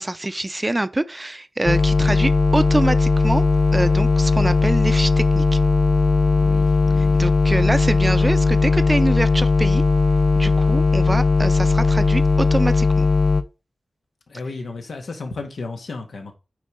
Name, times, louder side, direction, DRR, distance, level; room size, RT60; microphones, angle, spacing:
voice 1, 0.0-3.4 3.7-5.6 7.0-9.8 10.4-13.1, right 2 dB, 20° right, 0.5 m, -25 dB
sound 1, 1.7-13.4, left 3 dB, 45° left, 0.8 m, -18 dB
voice 2, 6.3-7.1 14.3-16.4, left 3 dB, 85° left, 1.7 m, -34 dB
9.3 x 3.9 x 5.1 m
wide cardioid pair, 105°, 0 cm